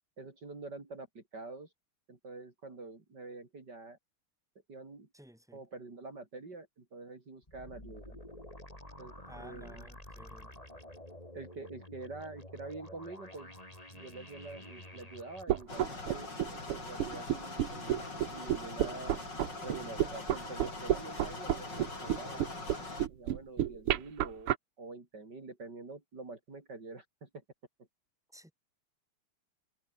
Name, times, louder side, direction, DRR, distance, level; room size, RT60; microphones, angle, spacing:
voice 1, 0.2-1.7 2.1-4.0 4.7-5.1 5.5-8.2 9.0-9.9 11.3-13.6 13.9-16.3 16.9-19.2 19.6-22.4 23.1-27.3, right 3 dB, 50° right, 4.6 m, -46 dB
voice 2, 5.1-5.6 9.3-10.6 28.3-28.5, equal, ahead, 7.4 m, -54 dB
sound 1, 7.4-15.6, left 1 dB, 15° left, 6.0 m, -50 dB
sound 2, 15.5-24.6, right 12 dB, 85° right, 2.0 m, -30 dB
sound 3, 15.7-23.1, left 3 dB, 50° left, 6.1 m, -43 dB
omnidirectional pair, 2.4 m